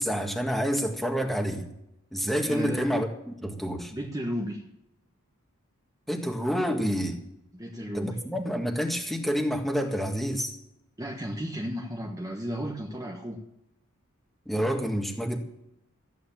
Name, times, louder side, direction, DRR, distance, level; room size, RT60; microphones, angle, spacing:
voice 1, 0.0-1.7 2.1-3.9 6.1-7.2 7.9-10.5 14.5-15.4, equal, ahead, 3 dB, 1.8 m, -28 dB
voice 2, 2.5-2.9 3.9-4.6 7.5-8.2 11.0-13.4, equal, 15° right, 1 dB, 1.3 m, -33 dB
14.5 x 9.5 x 7.5 m, 0.84 s
head